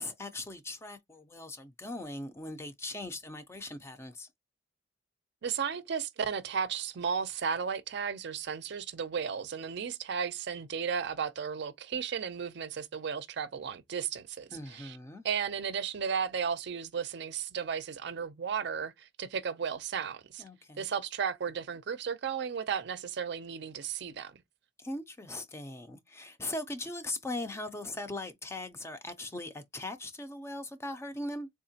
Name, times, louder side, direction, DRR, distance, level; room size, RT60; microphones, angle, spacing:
voice 1, 0.0-4.3 14.5-15.2 20.4-20.9 24.8-31.5, left 2 dB, 15° left, 0.4 m, -40 dB
voice 2, 5.4-15.0 15.2-20.4 20.8-24.4, right 7 dB, 65° right, 0.5 m, -34 dB
3.6 x 2.8 x 2.7 m
head